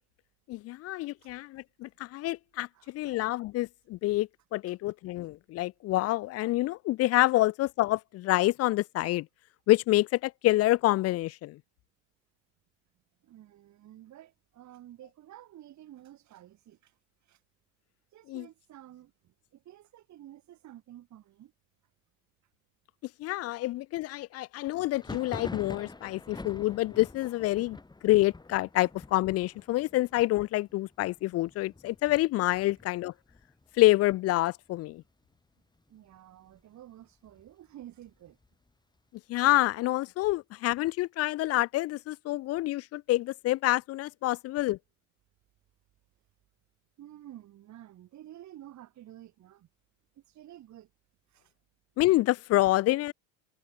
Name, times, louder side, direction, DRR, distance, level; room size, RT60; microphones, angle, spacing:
voice 1, 0.5-9.3 9.7-11.6 18.3-18.4 23.2-27.8 28.0-33.1 33.8-35.0 39.3-44.8 52.0-53.1, left 17 dB, 40° left, 0.4 m, -27 dB
voice 2, 2.7-3.2 4.7-4.8 13.2-17.0 17.2-17.4 18.1-21.5 35.9-38.4 47.0-49.7 50.1-50.9 51.3-51.5, right 13 dB, 45° right, 2.5 m, -51 dB
Thunder, 24.9-34.4 34.7-35.4 35.6-36.6 37.0-38.7, left 3 dB, 10° left, 1.7 m, -47 dB
supercardioid pair, 95°, 39 cm